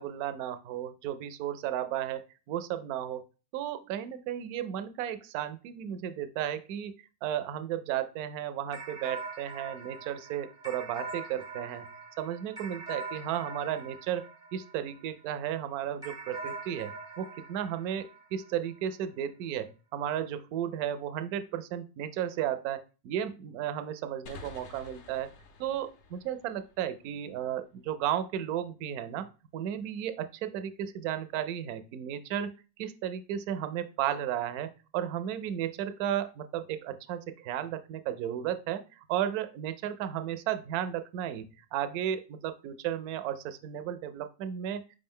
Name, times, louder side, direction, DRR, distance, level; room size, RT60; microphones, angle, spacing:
voice 1, 0.0-3.2 3.5-6.9 7.2-25.3 25.6-32.5 32.8-38.8 39.1-41.4 41.7-44.8, right 10 dB, 50° right, 11 dB, 0.5 m, -34 dB
sound 1, 8.7-15.3 16.0-18.8, right 4 dB, 10° right, 0.6 m, -43 dB
sound 2, 24.3-27.7, left 4 dB, 40° left, 0.5 m, -51 dB
4.8 x 2.2 x 3.6 m, 0.33 s
supercardioid pair, 150°, 49 cm